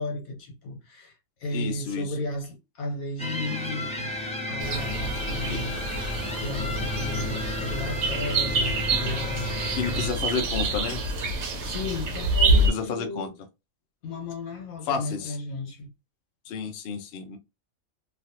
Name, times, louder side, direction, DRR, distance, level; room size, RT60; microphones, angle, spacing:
voice 1, 0.0-4.1 4.5-5.8 6.4-10.1 11.6-13.3 14.0-15.9, left 2 dB, 75° left, 1.5 m, -34 dB
voice 2, 1.5-2.1 5.5-5.6 9.8-11.0 12.5-13.3 14.9-15.3 16.5-17.4, left 6 dB, 60° left, 0.7 m, -31 dB
sound 1, 3.2-10.1, left 2 dB, 5° left, 0.6 m, -33 dB
sound 2, 4.6-12.7, right 2 dB, 60° right, 1.0 m, -27 dB
3.1 x 2.4 x 2.7 m
omnidirectional pair, 1.5 m